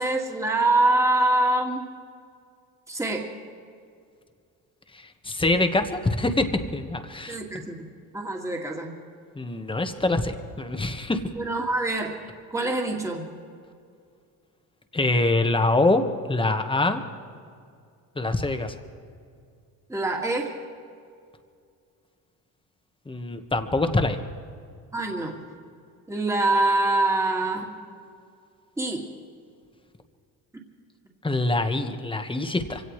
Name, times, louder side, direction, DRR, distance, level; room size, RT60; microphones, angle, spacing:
voice 1, 0.0-1.9 2.9-3.3 7.3-8.9 11.3-12.2 12.5-13.3 19.9-20.6 24.9-25.4 26.1-27.7 28.8-29.1, right 2 dB, 5° right, 0 dB, 2.2 m, -25 dB
voice 2, 4.9-5.9 6.2-7.4 9.3-11.2 14.9-17.0 18.2-18.8 23.1-24.2 31.2-32.8, left 2 dB, 15° left, 7 dB, 1.4 m, -24 dB
24.5 x 17.5 x 3.3 m, 2.3 s
supercardioid pair, 90°, 39 cm